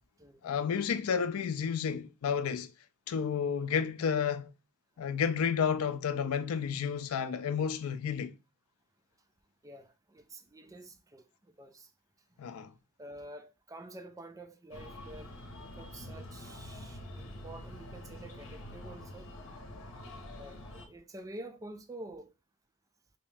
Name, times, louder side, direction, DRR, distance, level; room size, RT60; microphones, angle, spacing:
voice 1, 0.4-2.7 3.1-4.5 5.0-8.3 12.4-12.7, left 7 dB, 85° left, 0.4 m, -31 dB
voice 2, 9.6-11.9 12.3-12.4 13.0-15.3 15.6-19.3 20.4-22.3, right 1 dB, 15° right, 0.4 m, -48 dB
Breathing, 14.7-20.9, left 1 dB, 65° left, 0.9 m, -46 dB
3.0 x 2.7 x 3.4 m
head